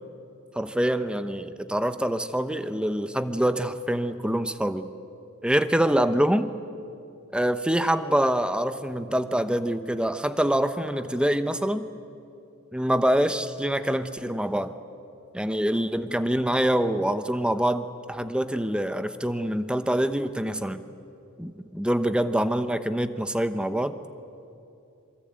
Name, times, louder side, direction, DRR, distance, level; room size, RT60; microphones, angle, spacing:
voice 1, 0.5-4.9 5.4-6.5 7.3-11.9 12.7-14.7 15.3-20.8 21.4-23.9, right 1 dB, 5° right, 11 dB, 0.9 m, -25 dB
26.5 x 24.5 x 8.9 m, 2.7 s
head